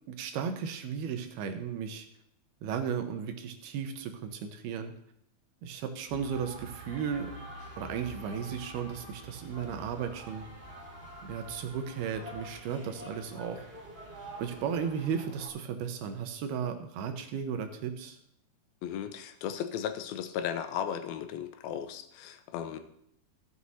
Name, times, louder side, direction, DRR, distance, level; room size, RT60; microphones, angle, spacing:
voice 1, 0.1-2.1 2.6-4.9 5.6-7.3 7.8-10.5 11.2-13.6 14.4-18.2, right 7 dB, 75° right, 7 dB, 2.8 m, -35 dB
sound 1, 6.1-15.5, right 1 dB, 20° right, 2.2 m, -46 dB
voice 2, 18.8-22.8, left 9 dB, 75° left, 9 dB, 2.4 m, -36 dB
16.0 x 6.3 x 4.2 m, 0.72 s
omnidirectional pair, 4.7 m